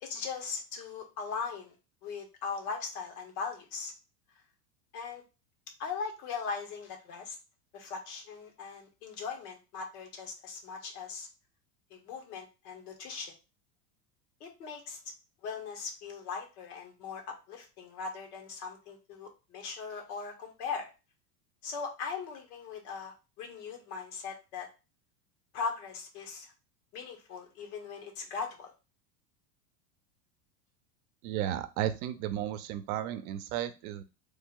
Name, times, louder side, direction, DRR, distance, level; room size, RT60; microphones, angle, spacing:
voice 1, 0.0-1.7 2.0-3.9 4.9-5.2 5.8-7.4 7.7-11.3 11.9-13.3 14.4-15.0 15.4-20.9 21.6-24.7 25.5-26.5 26.9-28.7, left 5 dB, 70° left, 3 dB, 1.2 m, -39 dB
voice 2, 31.2-34.0, right 11 dB, 65° right, 11 dB, 0.6 m, -34 dB
3.3 x 2.2 x 3.6 m, 0.29 s
supercardioid pair, 115°, 47 cm